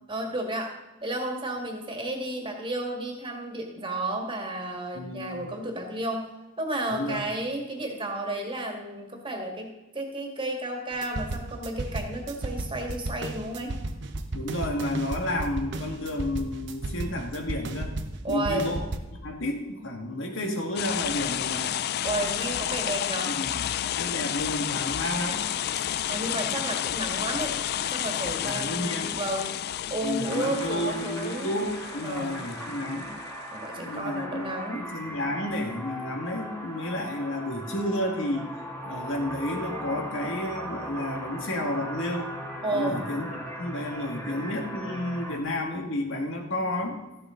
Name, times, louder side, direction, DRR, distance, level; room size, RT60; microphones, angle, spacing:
voice 1, 0.1-0.7 1.0-6.3 6.6-13.7 18.2-18.7 22.0-23.4 26.1-27.6 27.9-29.5 29.9-31.5 32.0-32.5 33.5-34.8 42.6-43.0, right 1 dB, 25° right, 2 dB, 1.9 m, -32 dB
voice 2, 4.9-5.5 6.9-7.3 14.3-17.9 18.3-18.9 19.2-21.7 23.2-23.5 24.0-25.4 28.4-29.1 30.0-33.1 33.8-38.5 38.9-42.3 42.7-47.0, left 1 dB, 65° left, 3 dB, 1.8 m, -31 dB
sound 1, 10.9-19.0, right 2 dB, 60° right, 0.9 m, -33 dB
sound 2, 20.8-33.3, left 10 dB, 50° left, 0.4 m, -31 dB
sound 3, 30.2-45.4, equal, 10° left, 2.4 m, -38 dB
14.0 x 11.5 x 3.8 m, 1.1 s
head